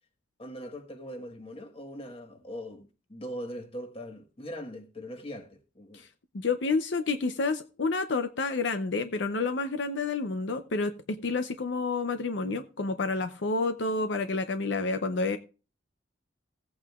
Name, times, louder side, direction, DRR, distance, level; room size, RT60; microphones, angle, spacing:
voice 1, 0.4-6.1, equal, 30° left, 1.3 m, -41 dB
voice 2, 6.3-10.9 11.2-15.4, left 3 dB, 65° left, 0.6 m, -29 dB
16.0 x 8.7 x 2.3 m
head